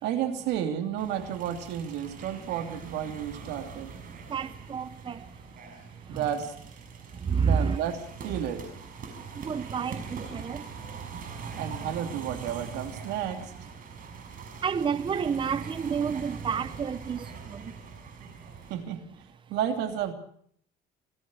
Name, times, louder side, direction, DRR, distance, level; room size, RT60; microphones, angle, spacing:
voice 1, 0.0-4.0 6.1-6.5 7.4-8.7 11.5-13.5 18.7-19.0 19.5-20.1, right 9 dB, 85° right, 2.9 m, -32 dB
sound 1, 1.0-18.8, right 5 dB, 55° right, 5.9 m, -42 dB
voice 2, 4.3-5.2 6.1-6.3 7.2-7.8 9.4-10.6 14.6-17.6, right 6 dB, 30° right, 0.8 m, -29 dB
27.5 x 16.5 x 6.3 m
cardioid pair, 110°, 17 cm